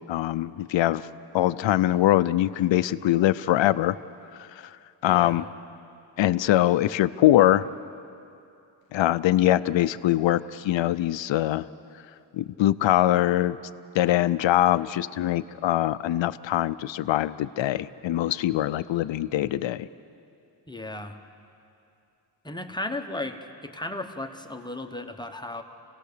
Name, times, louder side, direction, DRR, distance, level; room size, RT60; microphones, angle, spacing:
voice 1, 0.1-1.1 1.3-4.0 4.3-4.8 5.0-5.4 6.2-7.7 8.9-11.7 12.3-13.6 13.9-19.9, left 14 dB, 85° left, 14 dB, 0.5 m, -23 dB
voice 2, 5.0-5.5 20.7-21.2 22.4-25.6, left 2 dB, 10° left, 5 dB, 0.9 m, -35 dB
27.5 x 17.0 x 6.7 m, 2.6 s
wide cardioid pair, 170°, 44 cm